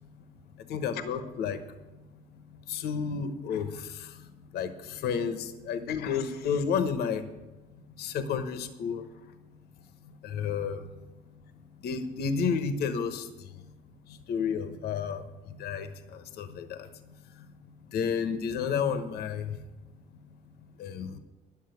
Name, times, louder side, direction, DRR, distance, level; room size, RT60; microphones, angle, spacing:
voice 1, 0.7-1.6 2.7-4.2 4.5-7.2 8.0-9.0 10.2-10.8 11.8-13.3 14.1-15.2 15.6-16.9 17.9-19.6 20.8-21.2, left 6 dB, 70° left, 9 dB, 1.1 m, -31 dB
10.5 x 7.2 x 9.4 m, 1.1 s
cardioid pair, 110°, 17 cm